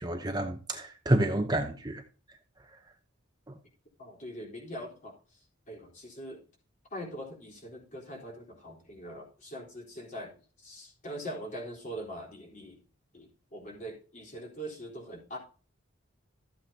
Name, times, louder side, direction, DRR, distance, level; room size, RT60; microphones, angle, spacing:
voice 1, 0.0-2.0, right 1 dB, 20° right, 0.8 m, -29 dB
voice 2, 4.0-5.1 5.7-6.4 6.9-12.8 13.1-15.4, equal, 35° left, 4.0 m, -42 dB
13.5 x 8.3 x 2.8 m
head